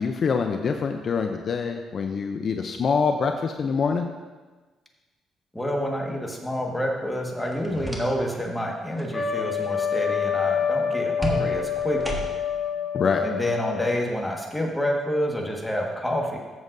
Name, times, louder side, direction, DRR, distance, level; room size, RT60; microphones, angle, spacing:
voice 1, 0.0-4.1 12.9-13.2, left 5 dB, 50° left, 5 dB, 0.6 m, -25 dB
voice 2, 5.5-12.3 13.2-16.4, equal, 5° left, 0 dB, 1.6 m, -28 dB
sound 1, 7.4-8.5 8.8-9.1 11.2-12.6, right 1 dB, 10° right, 1.5 m, -32 dB
Trumpet, 9.1-14.1, left 7 dB, 30° left, 1.0 m, -27 dB
14.0 x 7.3 x 2.7 m, 1.3 s
cardioid pair, 90°, 0 cm